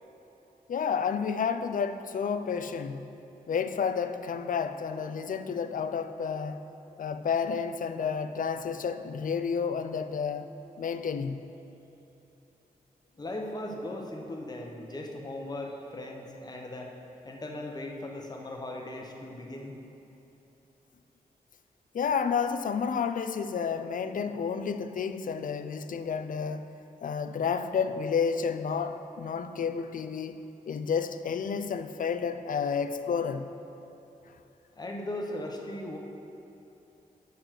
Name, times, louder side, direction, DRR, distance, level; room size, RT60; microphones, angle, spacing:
voice 1, 0.7-3.1 3.5-6.7 7.0-10.5 10.8-11.4 21.9-26.7 27.0-33.5, left 6 dB, 60° left, 9 dB, 0.4 m, -31 dB
voice 2, 13.2-16.9 17.2-19.7 34.8-36.0, left 1 dB, 25° left, 0 dB, 0.9 m, -38 dB
9.3 x 4.6 x 5.9 m, 3.0 s
wide cardioid pair, 145°, 15 cm